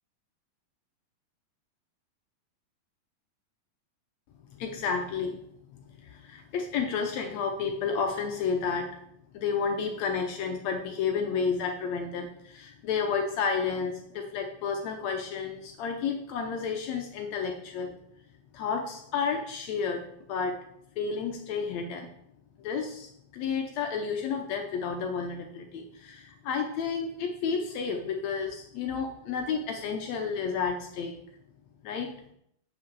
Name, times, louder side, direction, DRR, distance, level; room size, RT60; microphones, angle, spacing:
voice 1, 4.5-5.4 5.7-8.9 9.3-17.9 18.5-20.0 20.3-20.6 21.0-22.1 22.6-31.1 31.8-32.1, left 5 dB, 75° left, 3 dB, 1.6 m, -31 dB
7.6 x 5.8 x 6.6 m, 0.73 s
omnidirectional pair, 4.0 m